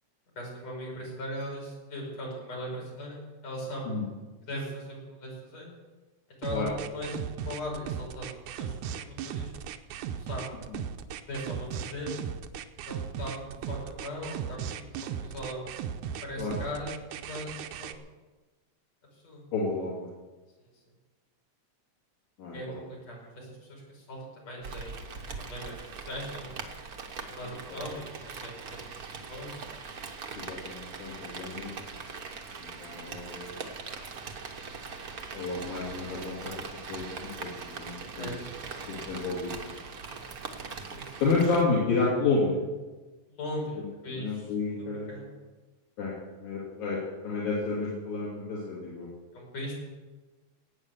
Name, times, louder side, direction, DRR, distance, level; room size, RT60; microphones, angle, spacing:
voice 1, 0.4-4.0 4.5-5.7 6.4-8.7 9.0-9.6 10.2-10.5 11.3-12.1 12.9-14.6 14.9-15.6 16.2-17.5 17.8-17.9 19.2-19.4 22.5-25.0 25.4-26.5 27.3-29.6 32.7-32.8 38.1-38.4 40.9-41.1 43.3-44.5 44.8-45.3 49.3-49.7, equal, 60° left, -3 dB, 6.5 m, -39 dB
sound 1, 6.4-18.0, right 8 dB, 80° right, 2.1 m, -37 dB
voice 2, 19.5-20.1 22.4-22.7 27.4-27.8 30.3-31.7 32.6-33.5 35.3-36.5 36.9-38.4 38.9-39.7 41.2-42.5 43.8-45.1 46.0-49.1, left 3 dB, 80° left, -6 dB, 4.3 m, -31 dB
Rain, 24.6-41.6, right 5 dB, 65° right, 0.9 m, -41 dB
17.5 x 9.0 x 6.9 m, 1.2 s
omnidirectional pair, 3.4 m